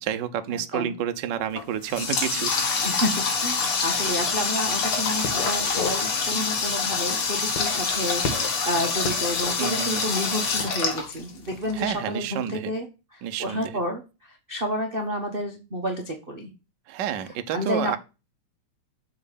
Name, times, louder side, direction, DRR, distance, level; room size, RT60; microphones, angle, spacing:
voice 1, 0.0-2.5 9.6-10.0 11.7-12.7 13.2-13.8 16.9-18.0, right 9 dB, 85° right, 8 dB, 1.0 m, -29 dB
Water tap faucet, 1.5-11.7, left 4 dB, 50° left, 2.5 m, -26 dB
voice 2, 2.8-12.9 13.1-16.5 17.5-17.9, equal, 60° right, 1 dB, 0.5 m, -30 dB
sound 1, 4.8-5.0 5.2-6.0 6.4-6.6 7.4-8.6 9.0-9.8 10.5-10.9, left 4 dB, 70° left, 2.7 m, -33 dB
7.7 x 4.7 x 6.8 m, 0.29 s
omnidirectional pair, 3.3 m